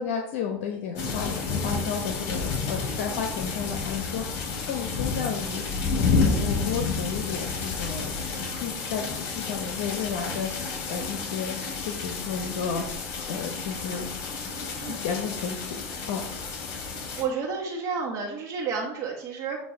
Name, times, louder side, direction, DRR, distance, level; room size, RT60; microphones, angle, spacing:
voice 1, 0.0-13.0 13.3-14.0 14.8-15.8 16.1-16.2, left 6 dB, 70° left, 3 dB, 0.9 m, -33 dB
sound 1, 1.0-17.2, left 4 dB, 50° left, 2.4 m, -30 dB
voice 2, 17.2-19.6, right 5 dB, 45° right, -2 dB, 1.4 m, -30 dB
8.0 x 2.8 x 5.7 m, 0.75 s
supercardioid pair, 115°, 7 cm